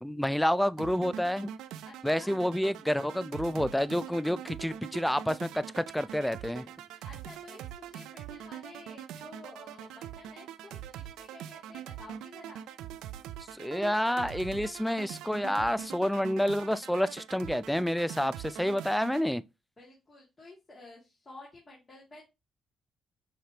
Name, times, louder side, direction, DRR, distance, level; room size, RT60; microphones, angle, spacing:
voice 1, 0.0-1.5 2.0-6.7 13.6-19.4, equal, 5° left, 0.3 m, -29 dB
sound 1, 0.8-19.3, right 10 dB, 90° right, 0.3 m, -43 dB
voice 2, 1.8-2.4 7.0-12.7 19.8-22.2, left 2 dB, 30° left, 2.1 m, -51 dB
5.7 x 3.3 x 2.8 m
cardioid pair, 90°, 0 cm